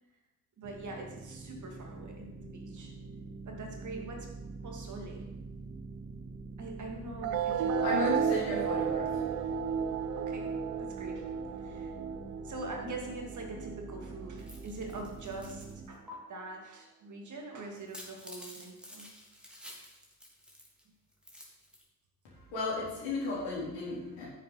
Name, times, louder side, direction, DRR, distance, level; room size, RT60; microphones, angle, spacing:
sound 1, 0.6-15.9, right 3 dB, 20° right, 1.8 m, -46 dB
voice 1, 0.6-2.9 3.5-4.3 4.6-5.3 6.6-7.9 8.5-8.8 10.2-12.0 12.4-19.1, right 2 dB, 40° right, 1 dB, 2.3 m, -44 dB
sound 2, 7.2-14.2, right 7 dB, 65° right, 0.7 m, -33 dB
voice 2, 7.8-9.2 22.2-24.3, left 3 dB, 65° left, -6 dB, 4.2 m, -35 dB
sound 3, 14.4-15.7 16.1-16.2 17.7-20.8 21.1-21.8, left 1 dB, ahead, 3.0 m, -50 dB
14.0 x 7.3 x 4.2 m, 1.0 s
figure-of-eight pair, 50°, 45 cm